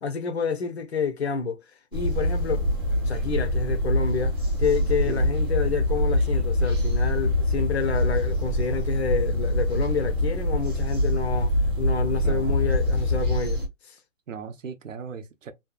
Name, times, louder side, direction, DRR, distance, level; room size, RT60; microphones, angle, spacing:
voice 1, 0.0-1.6 1.9-2.7 3.1-14.0, left 5 dB, 50° left, 0.6 m, -29 dB
sound 1, 1.9-13.7, left 1 dB, 15° right, 0.7 m, -24 dB
voice 2, 12.2-12.6 14.3-15.5, right 6 dB, 65° right, 0.6 m, -37 dB
2.7 x 2.3 x 2.2 m
hypercardioid pair, 170°, 42 cm